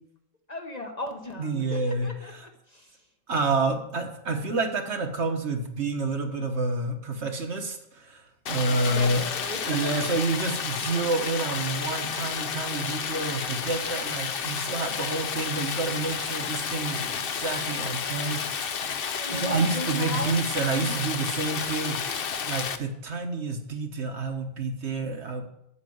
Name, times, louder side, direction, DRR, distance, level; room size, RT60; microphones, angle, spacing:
voice 1, 0.5-3.0 8.6-9.8 19.2-21.0 21.8-22.3, left 1 dB, 35° left, 4 dB, 1.1 m, -37 dB
voice 2, 1.4-2.5 3.3-9.2 9.6-18.6 19.3-22.0 22.5-25.5, right 3 dB, 60° right, 4 dB, 1.5 m, -29 dB
Stream, 8.5-22.8, left 7 dB, 55° left, 0.8 m, -31 dB
8.6 x 6.5 x 7.9 m, 0.79 s
omnidirectional pair, 1.3 m